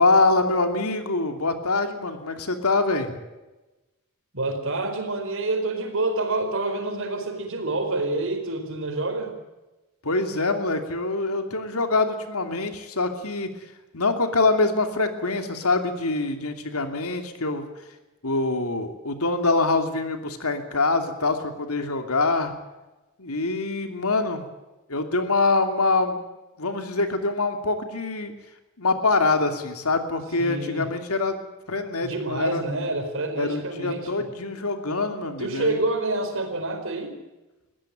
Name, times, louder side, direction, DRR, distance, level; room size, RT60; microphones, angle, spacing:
voice 1, 0.0-3.1 10.0-17.7 18.2-22.5 23.2-24.4 24.9-26.2 26.6-28.3 28.8-31.4 31.7-32.7 33.4-35.8, left 3 dB, 80° left, 7 dB, 2.8 m, -24 dB
voice 2, 4.3-9.3 30.4-30.9 32.0-34.1 35.4-37.1, right 2 dB, 60° right, 6 dB, 4.5 m, -27 dB
21.5 x 16.0 x 7.7 m, 1.1 s
head